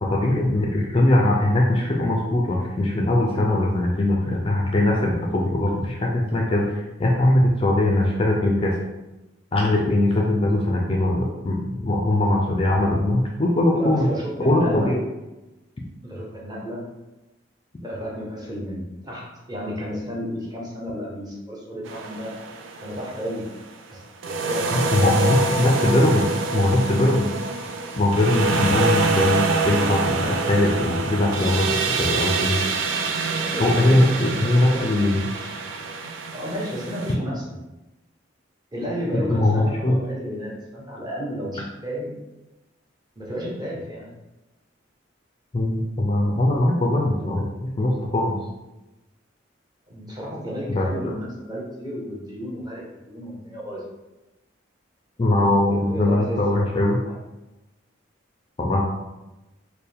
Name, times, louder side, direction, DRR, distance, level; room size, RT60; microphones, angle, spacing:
voice 1, 0.0-8.7 9.5-14.1 14.4-15.0 24.7-26.2 26.5-27.3 28.0-31.7 32.0-32.6 33.6-35.2 39.3-40.0 45.5-48.4 50.7-51.1 55.2-57.0 58.6-58.8, left 1 dB, 25° left, -1 dB, 0.4 m, -21 dB
voice 2, 13.7-14.9 16.0-16.9 17.8-22.3 22.8-23.5 23.9-25.8 33.4-35.5 36.3-37.4 38.7-42.1 43.2-44.1 49.9-53.9 55.6-56.4 56.8-57.2, equal, 20° right, -4 dB, 0.8 m, -32 dB
sound 1, 21.8-23.3 24.2-37.1, right 3 dB, 85° right, 0.4 m, -26 dB
4.4 x 2.1 x 3.4 m, 1.0 s
head